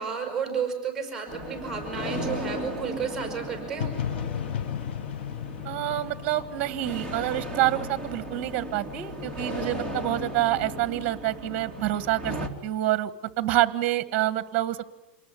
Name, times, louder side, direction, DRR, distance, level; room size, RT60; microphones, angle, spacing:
voice 1, 0.0-3.9, right 6 dB, 10° right, 4 dB, 6.2 m, -32 dB
sound 1, 1.3-12.5, equal, 15° left, 3.2 m, -36 dB
sound 2, 3.8-7.7, left 9 dB, 80° left, 1.0 m, -34 dB
voice 2, 5.7-12.4 12.6-13.1 13.4-14.8, right 15 dB, 35° right, 14 dB, 1.6 m, -27 dB
27.5 x 20.0 x 9.7 m, 1.0 s
supercardioid pair, 150°, 6 cm